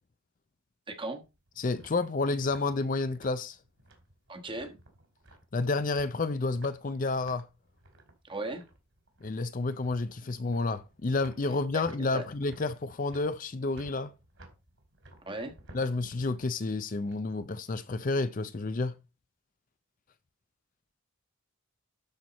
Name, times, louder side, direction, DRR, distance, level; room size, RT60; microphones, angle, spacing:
voice 1, 0.9-1.2 4.3-4.8 8.2-8.7 12.0-12.2 15.2-15.5, right 2 dB, 25° right, 1.3 m, -37 dB
sound 1, 1.2-17.8, right 1 dB, 60° right, 2.8 m, -57 dB
voice 2, 1.6-3.6 5.5-7.4 9.2-14.1 15.7-18.9, left 3 dB, 35° left, 0.5 m, -30 dB
12.0 x 4.6 x 4.0 m
head